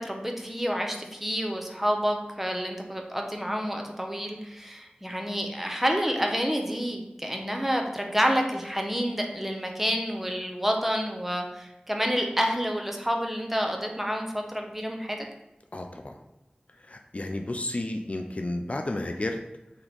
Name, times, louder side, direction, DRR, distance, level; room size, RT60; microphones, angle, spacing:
voice 1, 0.0-15.2, equal, 10° right, 2 dB, 0.6 m, -29 dB
voice 2, 15.7-16.1 16.9-19.4, left 1 dB, 45° left, 4 dB, 0.3 m, -32 dB
3.3 x 3.0 x 3.9 m, 0.92 s
wide cardioid pair, 45°, 3 cm